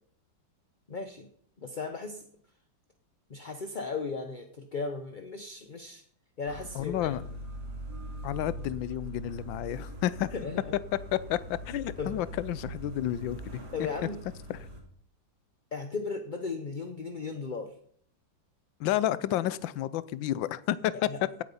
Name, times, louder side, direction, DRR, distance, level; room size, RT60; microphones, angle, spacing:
voice 1, 0.9-1.3 1.6-2.3 3.3-6.0 6.4-7.1 10.3-10.7 12.0-12.2 13.7-14.2 15.7-17.8 21.1-21.2, left 4 dB, 40° left, 6 dB, 0.7 m, -36 dB
sound 1, 6.4-14.8, right 1 dB, 60° right, 3.4 m, -42 dB
voice 2, 6.7-7.2 8.2-10.4 11.1-13.6 14.5-14.7 18.8-21.1, left 13 dB, 85° left, 17 dB, 1.4 m, -31 dB
17.5 x 8.0 x 5.6 m, 0.62 s
omnidirectional pair, 2.0 m